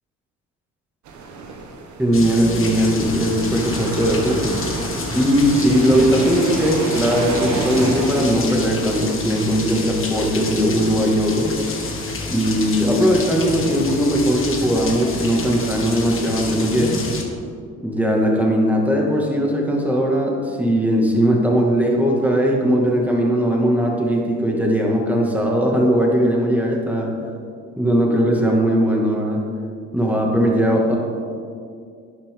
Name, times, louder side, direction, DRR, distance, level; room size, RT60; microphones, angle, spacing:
sound 1, 1.0-9.1, right 3 dB, 70° right, 1.4 m, -30 dB
voice 1, 2.0-4.4 5.1-11.5 12.3-16.9 17.8-27.1 27.8-29.4 29.9-30.9, equal, 5° right, -2 dB, 2.3 m, -19 dB
sound 2, 2.1-17.2, left 3 dB, 45° left, 1.7 m, -29 dB
12.0 x 8.9 x 3.9 m, 2.3 s
cardioid pair, 90°, 30 cm